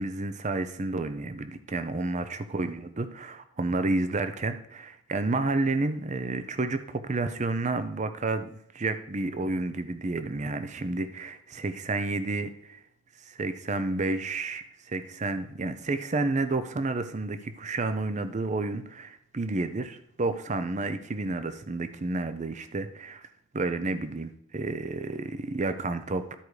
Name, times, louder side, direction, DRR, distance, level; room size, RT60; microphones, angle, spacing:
voice 1, 0.0-12.8 13.2-23.2 23.5-26.4, right 2 dB, 35° right, 10 dB, 0.6 m, -30 dB
13.0 x 4.7 x 4.9 m, 0.72 s
head